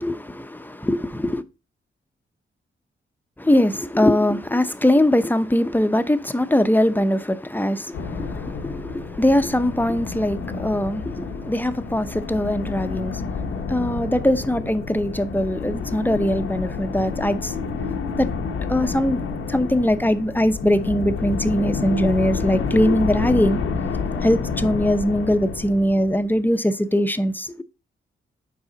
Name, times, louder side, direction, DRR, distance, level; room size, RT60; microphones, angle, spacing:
voice 1, 0.0-1.4 3.4-17.6 18.2-18.3 18.7-19.2 19.5-23.6 24.2-27.6, left 1 dB, 10° left, 0.7 m, -21 dB
sound 1, 7.9-26.4, left 5 dB, 90° left, 1.0 m, -29 dB
7.1 x 4.8 x 4.0 m
cardioid pair, 60°, 21 cm